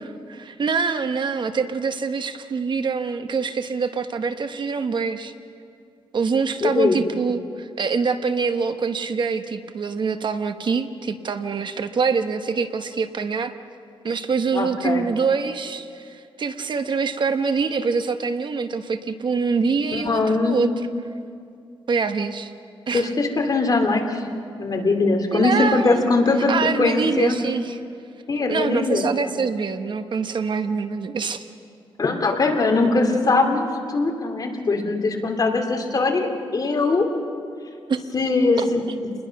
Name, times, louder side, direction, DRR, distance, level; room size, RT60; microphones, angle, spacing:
voice 1, 0.0-5.3 6.1-13.5 14.0-20.7 21.9-22.5 22.9-23.1 25.3-26.0 26.5-27.8 28.5-31.4 37.9-38.0 38.6-38.7, right 5 dB, 55° right, 8 dB, 1.1 m, -25 dB
voice 2, 6.6-7.0 14.5-15.0 19.9-20.7 22.9-24.2 24.6-26.5 26.8-27.4 28.3-29.0 32.0-37.1 38.1-38.8, left 3 dB, 40° left, 3 dB, 2.8 m, -21 dB
29.0 x 21.0 x 6.0 m, 2.4 s
wide cardioid pair, 110°, 10 cm